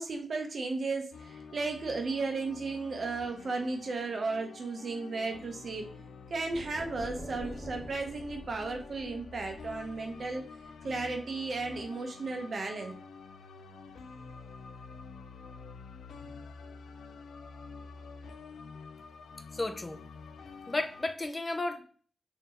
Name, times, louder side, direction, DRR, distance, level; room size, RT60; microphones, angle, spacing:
voice 1, 0.0-6.0 6.3-10.5 10.8-12.9, right 3 dB, 55° right, 0.5 m, -34 dB
sound 1, 1.1-21.1, left 4 dB, 90° left, 0.3 m, -48 dB
sound 2, 6.5-10.3, equal, 25° right, 1.2 m, -46 dB
voice 2, 19.5-20.0 20.7-21.8, left 2 dB, 30° left, 0.5 m, -33 dB
3.7 x 2.6 x 2.8 m
cardioid pair, 85°, 0 cm